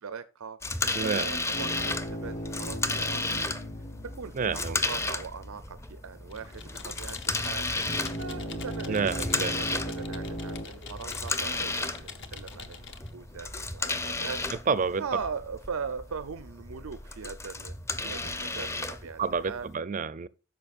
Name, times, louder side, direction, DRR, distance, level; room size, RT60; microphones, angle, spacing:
voice 1, 0.0-0.6 1.0-3.5 4.2-14.4 15.0-17.7 18.0-19.7, right 5 dB, 90° right, 0.6 m, -40 dB
sound 1, 0.6-19.7, left 2 dB, 15° left, 0.5 m, -34 dB
voice 2, 1.0-1.4 4.3-4.8 8.9-9.6 14.7-15.0 19.2-20.3, right 5 dB, 40° right, 0.5 m, -29 dB
sound 2, 1.5-4.9 7.9-10.7, equal, 35° left, 1.1 m, -37 dB
Computer keyboard, 6.3-13.1, left 6 dB, 55° left, 1.0 m, -45 dB
13.5 x 5.7 x 2.5 m
head